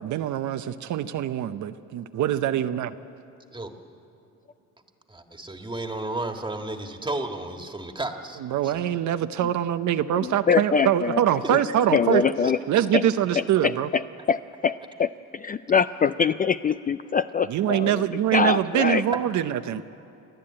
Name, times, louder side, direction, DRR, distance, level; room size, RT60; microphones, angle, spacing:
voice 1, 0.0-3.0 8.4-12.2 12.7-13.9 17.5-19.8, right 11 dB, 70° right, 10 dB, 0.7 m, -24 dB
voice 2, 5.1-8.8 12.1-12.5 13.3-13.4 18.3-18.4, right 2 dB, 15° right, 4 dB, 1.8 m, -33 dB
voice 3, 10.2-11.2 11.5-11.6 11.9-12.6 12.9-13.0 13.4-14.0 14.3-18.0 18.3-19.0, left 6 dB, 30° left, 12 dB, 0.4 m, -24 dB
29.0 x 10.5 x 8.7 m, 2.7 s
cardioid pair, 90°, 30 cm